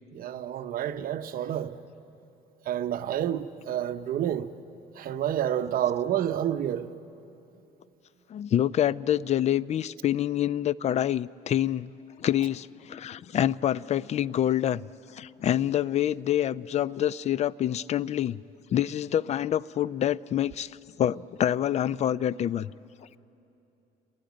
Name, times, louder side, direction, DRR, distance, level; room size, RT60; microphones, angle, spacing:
voice 1, 0.2-1.8 2.7-4.5 5.0-6.9, right 10 dB, 60° right, 0.8 m, -29 dB
voice 2, 8.3-11.9 12.2-14.8 15.1-18.4 18.7-22.7, left 11 dB, 40° left, 0.4 m, -26 dB
30.0 x 19.0 x 5.1 m
cardioid pair, 110°, 17 cm